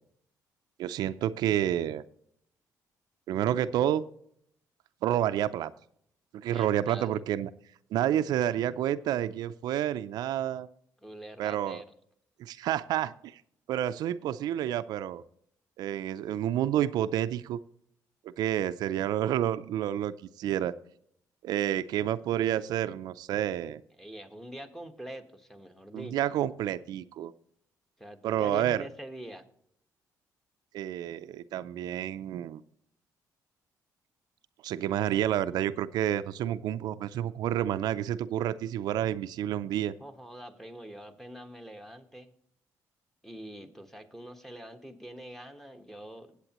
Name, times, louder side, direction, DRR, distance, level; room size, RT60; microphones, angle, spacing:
voice 1, 0.8-2.0 3.3-4.1 5.0-5.7 6.3-7.5 7.9-10.7 11.4-11.8 12.4-13.4 13.7-15.2 15.8-17.6 18.2-20.7 21.4-23.8 25.9-27.3 28.2-28.9 30.7-32.6 34.6-39.9, right 11 dB, 80° right, 12 dB, 0.4 m, -29 dB
voice 2, 6.5-7.1 11.0-11.9 24.0-26.2 28.0-29.5 40.0-42.3 43.2-46.4, right 1 dB, 5° left, 6 dB, 1.3 m, -44 dB
16.5 x 8.2 x 3.0 m, 0.68 s
cardioid pair, 95°, 7 cm